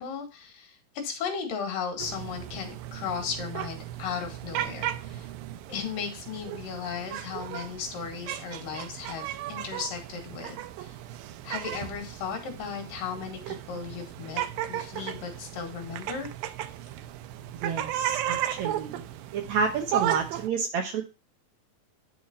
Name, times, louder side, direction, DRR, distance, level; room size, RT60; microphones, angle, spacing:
voice 1, 0.0-5.3 5.7-11.0 11.4-16.3, left 6 dB, 75° left, 4 dB, 3.4 m, -36 dB
sound 1, 2.0-20.5, right 12 dB, 85° right, 2.4 m, -35 dB
voice 2, 17.5-19.0 19.3-21.0, right 5 dB, 70° right, 4 dB, 1.9 m, -30 dB
11.0 x 4.3 x 4.1 m, 0.29 s
omnidirectional pair, 4.1 m